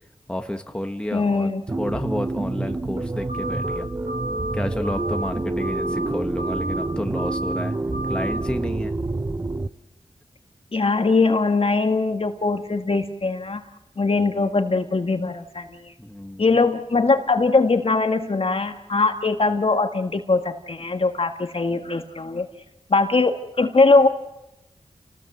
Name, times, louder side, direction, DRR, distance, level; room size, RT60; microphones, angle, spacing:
voice 1, 0.3-1.5 1.8-3.9 4.5-7.7 8.1-8.9 16.0-16.4, left 1 dB, 10° left, 5 dB, 1.6 m, -30 dB
voice 2, 1.1-1.6 10.7-13.6 14.0-15.9 16.4-22.5 22.9-24.1, left 3 dB, 50° left, 6 dB, 1.9 m, -21 dB
sound 1, 1.7-9.7, right 2 dB, 30° right, 0.8 m, -28 dB
sound 2, 3.3-3.8 4.1-4.5 4.8-5.3 5.6-6.1 6.4-6.9 7.1-7.6 7.9-8.4, right 1 dB, 75° right, 2.8 m, -31 dB
29.0 x 19.0 x 7.9 m, 0.92 s
wide cardioid pair, 80°, 12 cm